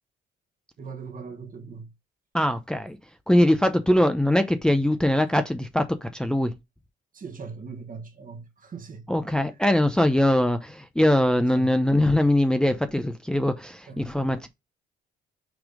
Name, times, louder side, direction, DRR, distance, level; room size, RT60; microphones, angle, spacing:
voice 1, 0.8-1.9 7.1-9.0 11.5-11.7 13.9-14.0, right 5 dB, 45° right, 1.5 m, -39 dB
voice 2, 2.3-3.0 3.3-6.5 9.1-14.5, left 1 dB, 5° left, 0.7 m, -22 dB
6.2 x 3.3 x 5.1 m
cardioid pair, 90°, 20 cm